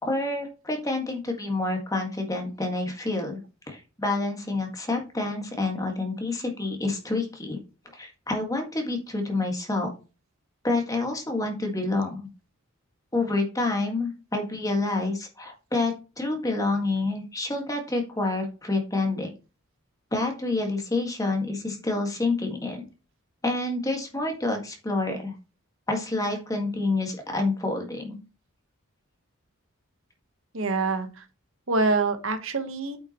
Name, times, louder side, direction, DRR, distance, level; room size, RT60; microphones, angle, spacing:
voice 1, 0.0-3.4 3.7-7.6 7.9-9.9 10.6-12.2 13.1-19.3 20.1-22.8 23.4-25.3 25.9-28.2, left 2 dB, 15° left, 3 dB, 1.7 m, -28 dB
voice 2, 30.5-31.2 31.7-33.0, right 3 dB, 65° right, 7 dB, 1.1 m, -25 dB
8.6 x 5.7 x 3.0 m, 0.31 s
head